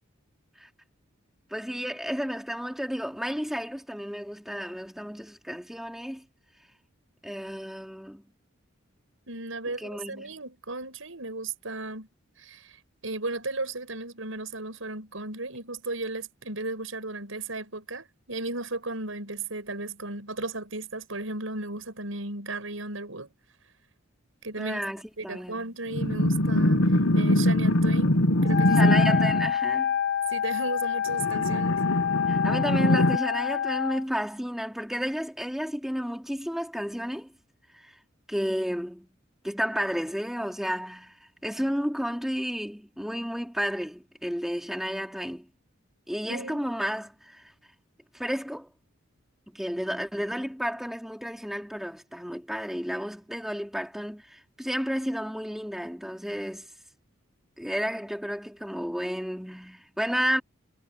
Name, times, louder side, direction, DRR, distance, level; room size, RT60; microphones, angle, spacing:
voice 1, 1.5-6.2 7.2-8.2 9.8-10.3 24.6-25.7 28.7-29.9 32.3-37.3 37.7-38.0 38.3-39.1 39.4-41.2 41.4-45.5 46.1-47.5 48.1-48.7 49.5-56.7 57.6-60.4, equal, ahead, 3.6 m, -32 dB
voice 2, 9.3-12.1 12.4-12.8 13.0-23.3 24.4-24.8 25.2-29.0 30.3-31.8 46.3-46.6, right 2 dB, 80° right, 6.5 m, -35 dB
sound 1, 25.9-29.5 31.1-33.2, left 1 dB, 75° left, 1.4 m, -22 dB
Wind instrument woodwind instrument, 28.4-34.0, left 8 dB, 55° left, 0.9 m, -27 dB
head